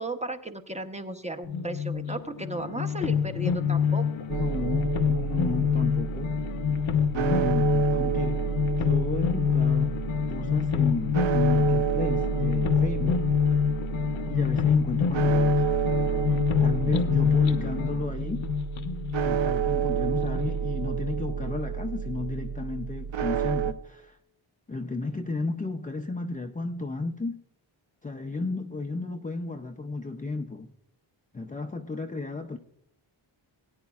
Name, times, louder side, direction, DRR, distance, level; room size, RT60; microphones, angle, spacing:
voice 1, 0.0-4.3, right 1 dB, 15° right, 0.8 m, -35 dB
sound 1, 1.4-20.6, left 7 dB, 70° left, 0.9 m, -26 dB
voice 2, 4.3-6.4 7.1-8.5 8.8-10.0 10.3-13.2 14.3-15.6 16.6-18.5 19.2-24.2 24.7-27.4 28.0-30.7 31.3-32.6, left 3 dB, 20° left, 0.4 m, -33 dB
sound 2, 4.3-23.7, right 8 dB, 65° right, 0.7 m, -30 dB
19.0 x 9.5 x 2.3 m
wide cardioid pair, 130°, 48 cm